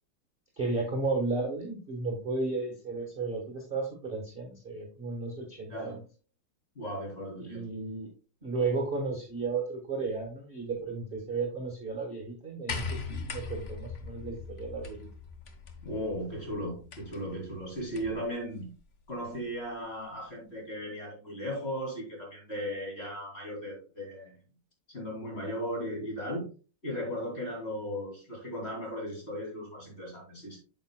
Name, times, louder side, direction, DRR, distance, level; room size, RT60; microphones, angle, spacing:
voice 1, 0.6-6.0 7.4-8.1 8.4-15.1, right 3 dB, 30° right, 0 dB, 1.3 m, -34 dB
voice 2, 5.7-6.0 6.7-7.6 15.8-18.7 19.1-24.3 24.9-26.5 26.8-30.6, equal, 30° left, -1 dB, 3.0 m, -36 dB
sound 1, 12.7-18.3 19.4-19.5, left 5 dB, 50° left, 0.9 m, -40 dB
8.5 x 6.8 x 2.2 m, 0.34 s
omnidirectional pair, 2.3 m